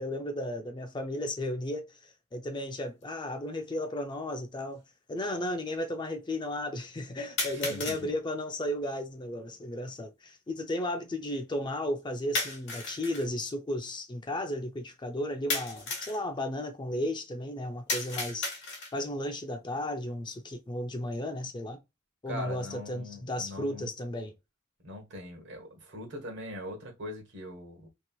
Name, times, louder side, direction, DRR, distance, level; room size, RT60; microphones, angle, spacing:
voice 1, 0.0-4.8 5.1-18.5 18.9-21.8 22.2-24.3, left 1 dB, 20° left, 0.4 m, -34 dB
sound 1, 3.0-3.1 4.1-4.2 7.4-8.0 12.3-13.3 15.5-16.2 17.9-19.1, left 3 dB, 60° left, 1.1 m, -34 dB
voice 2, 7.5-8.1 22.3-23.9 24.8-27.9, left 1 dB, 60° right, 1.3 m, -41 dB
3.0 x 2.9 x 2.3 m
head